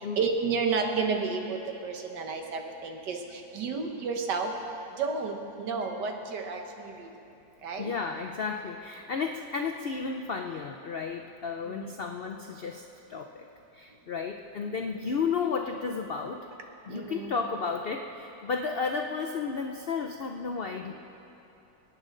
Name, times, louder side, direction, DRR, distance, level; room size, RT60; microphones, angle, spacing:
voice 1, 0.0-1.6 1.8-4.5 5.0-7.1 7.6-7.9 11.7-11.9 16.9-17.3, right 5 dB, 85° right, 3 dB, 1.8 m, -31 dB
voice 2, 7.8-13.5 13.7-16.5 16.9-20.9, left 5 dB, 85° left, 4 dB, 0.5 m, -33 dB
24.0 x 9.6 x 3.9 m, 3.0 s
omnidirectional pair, 1.8 m